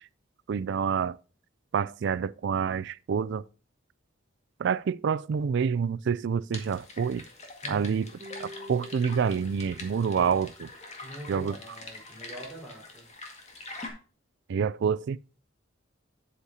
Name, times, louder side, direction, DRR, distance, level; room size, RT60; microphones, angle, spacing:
voice 1, 0.5-1.2 1.7-3.4 4.6-7.2 7.7-8.1 8.4-10.7 11.3-11.6 14.5-15.2, right 6 dB, 60° right, 0.3 m, -27 dB
sound 1, 6.5-13.9, left 2 dB, 35° left, 1.8 m, -44 dB
sound 2, 8.2-10.7, left 1 dB, 45° right, 1.8 m, -47 dB
voice 2, 11.0-13.1, equal, 5° left, 4.4 m, -43 dB
8.4 x 8.2 x 2.8 m
head